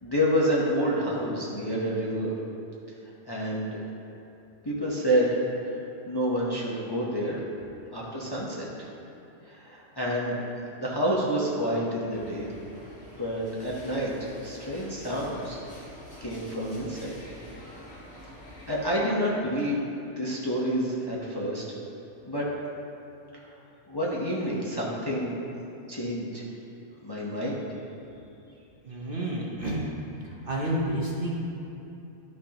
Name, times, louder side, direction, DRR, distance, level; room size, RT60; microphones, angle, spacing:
voice 1, 0.0-2.3 3.3-3.8 4.6-5.4 6.1-7.4 7.9-8.7 9.5-10.4 10.8-12.5 13.2-14.1 14.4-15.6 16.2-17.1 18.7-19.8 20.2-21.6 22.3-22.4 23.9-25.4 25.9-26.4 27.0-27.7, equal, 20° left, -5 dB, 0.8 m, -28 dB
sound 1, 12.1-19.0, equal, 50° left, 1.8 m, -47 dB
voice 2, 28.8-29.9 30.2-31.4, right 1 dB, 45° right, -3 dB, 1.0 m, -30 dB
11.5 x 6.3 x 2.9 m, 2.9 s
omnidirectional pair, 1.5 m